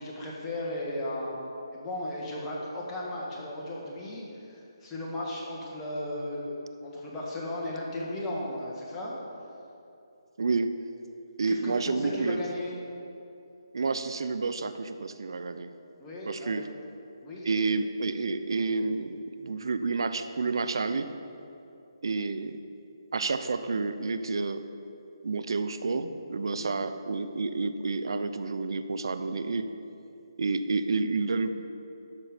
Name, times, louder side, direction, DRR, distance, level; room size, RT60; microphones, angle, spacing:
voice 1, 0.0-6.5 6.8-9.1 11.5-12.8 16.0-16.7 17.2-17.5 26.5-26.7, left 1 dB, 15° left, -5 dB, 1.7 m, -36 dB
voice 2, 10.4-10.7 11.4-12.4 13.7-15.7 16.3-16.7 17.5-21.1 22.0-22.6 23.1-24.6 25.2-29.7 30.4-31.5, right 4 dB, 70° right, 10 dB, 0.6 m, -29 dB
12.5 x 5.5 x 5.0 m, 2.7 s
figure-of-eight pair, 155°, 3 cm